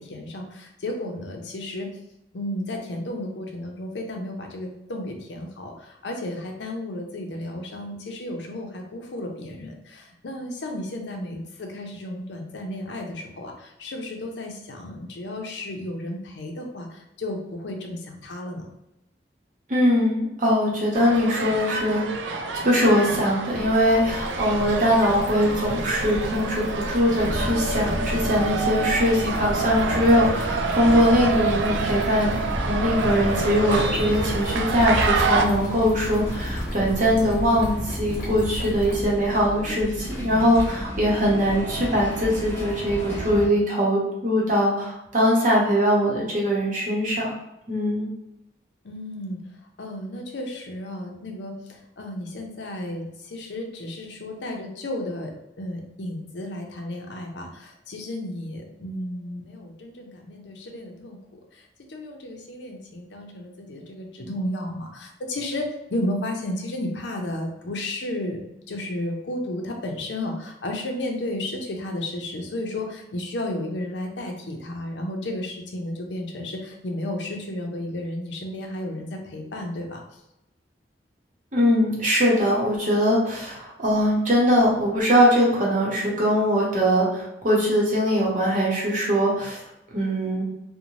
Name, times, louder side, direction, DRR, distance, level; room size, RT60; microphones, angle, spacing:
voice 1, 0.0-1.9 2.3-18.7 48.8-49.4 49.8-61.2 61.5-80.0, left 1 dB, 80° left, 2 dB, 0.5 m, -33 dB
voice 2, 19.7-47.3 47.7-48.1 81.5-89.6 89.9-90.4, equal, 45° right, -4 dB, 0.8 m, -22 dB
sound 1, 20.9-35.4, right 4 dB, 85° right, 0.3 m, -28 dB
sound 2, 23.5-39.1, equal, 50° left, 1.0 m, -35 dB
sound 3, 27.1-43.5, equal, 15° left, 0.7 m, -32 dB
2.6 x 2.1 x 3.0 m, 0.87 s
head